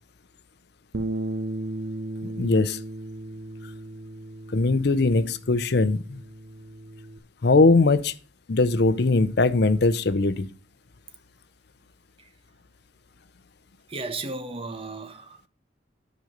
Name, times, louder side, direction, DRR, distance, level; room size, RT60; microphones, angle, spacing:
Bass guitar, 0.9-7.2, right 1 dB, 85° right, 1.1 m, -35 dB
voice 1, 2.2-2.8 4.5-6.2 7.4-8.1 8.5-10.5, left 3 dB, 60° left, 0.6 m, -21 dB
voice 2, 13.9-15.5, right 3 dB, 30° right, 1.1 m, -35 dB
9.5 x 5.2 x 6.6 m
head